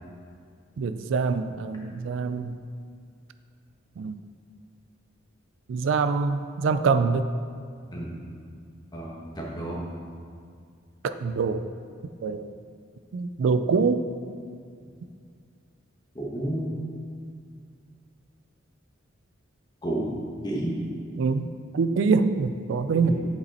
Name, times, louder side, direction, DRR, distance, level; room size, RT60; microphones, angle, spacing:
voice 1, 0.8-2.6 4.0-4.2 5.7-7.3 11.0-11.6 12.2-12.5 13.1-14.0 21.2-23.2, right 4 dB, 75° right, 10 dB, 0.4 m, -25 dB
voice 2, 8.9-9.8 16.1-16.8 19.8-20.1 20.4-20.8 22.9-23.3, right 1 dB, 20° left, -3 dB, 1.3 m, -31 dB
8.1 x 5.3 x 4.2 m, 2.3 s
head